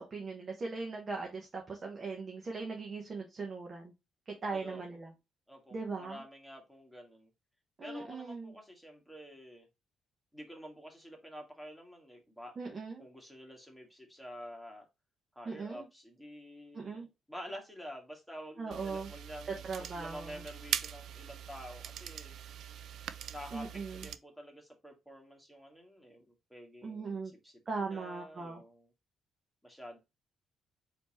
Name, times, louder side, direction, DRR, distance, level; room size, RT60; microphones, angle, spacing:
voice 1, 0.0-3.9 4.3-5.1 5.7-6.2 7.8-8.5 12.6-13.0 15.4-15.8 16.7-17.1 18.6-19.1 19.6-20.4 23.5-24.1 26.8-27.3 27.7-28.6, right 4 dB, 40° right, 1.2 m, -39 dB
voice 2, 4.5-4.8 5.5-7.3 7.8-9.7 10.3-12.6 13.0-14.9 15.4-22.4 23.3-28.9 29.6-30.0, equal, ahead, 1.8 m, -49 dB
sound 1, 18.7-24.2, right 9 dB, 70° right, 0.4 m, -42 dB
4.3 x 2.9 x 4.2 m
cardioid pair, 90°, 0 cm